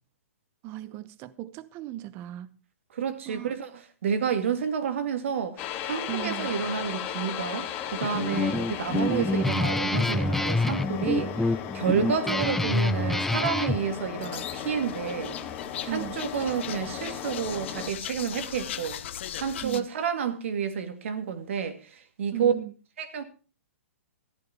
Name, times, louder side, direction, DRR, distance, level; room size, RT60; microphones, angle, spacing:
voice 1, 0.6-2.6 3.2-3.5 6.1-6.5 12.0-12.1 15.9-16.1 19.6-19.9 22.3-22.7, right 15 dB, 30° right, 0.9 m, -36 dB
voice 2, 2.9-3.7 4.0-15.4 15.8-19.0 19.4-22.5 23.0-23.2, right 7 dB, 65° right, 2.2 m, -30 dB
sound 1, 5.6-17.9, left 9 dB, 30° left, 2.2 m, -36 dB
Guitar, 8.0-13.8, left 2 dB, 5° left, 0.5 m, -27 dB
sound 2, 14.2-19.8, left 11 dB, 60° left, 1.1 m, -39 dB
14.0 x 10.5 x 4.4 m
hypercardioid pair, 140°, 7 cm